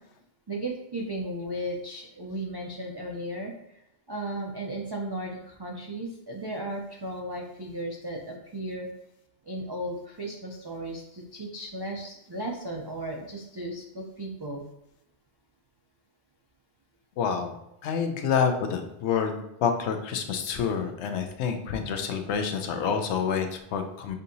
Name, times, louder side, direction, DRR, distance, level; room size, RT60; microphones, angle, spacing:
voice 1, 0.5-3.8 4.1-8.9 9.5-14.6, right 1 dB, 40° right, -1 dB, 0.3 m, -35 dB
voice 2, 17.2-17.6 17.8-24.2, left 6 dB, 75° left, 6 dB, 0.9 m, -28 dB
6.7 x 2.7 x 2.6 m, 0.84 s
omnidirectional pair, 1.2 m